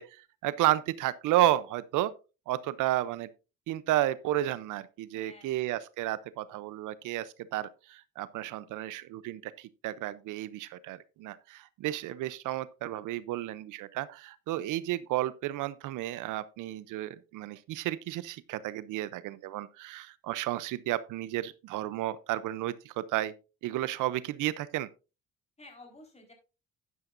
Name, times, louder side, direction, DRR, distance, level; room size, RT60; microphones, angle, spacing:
voice 1, 0.0-2.1 2.5-3.3 3.7-23.3 23.6-24.9, right 14 dB, 85° right, 0.6 m, -32 dB
voice 2, 5.1-5.7 25.6-26.3, left 2 dB, 20° left, 4.2 m, -53 dB
11.0 x 10.5 x 2.5 m
cardioid pair, 90°, 30 cm